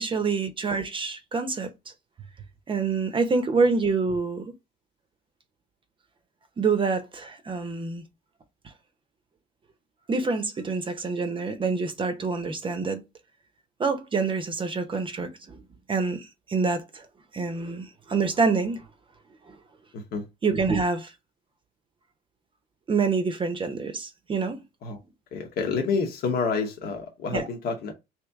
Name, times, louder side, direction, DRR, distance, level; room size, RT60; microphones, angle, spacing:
voice 1, 0.0-1.7 2.7-4.5 6.6-8.0 10.1-13.0 13.8-15.6 15.9-17.1 17.3-18.8 19.5-19.6 20.4-21.1 22.9-24.6 27.3-27.5, right 4 dB, 30° right, 0.7 m, -26 dB
voice 2, 19.9-20.2 24.8-25.0 25.3-27.9, left 5 dB, 65° left, 1.0 m, -28 dB
3.2 x 2.9 x 3.4 m
cardioid pair, 110°, 17 cm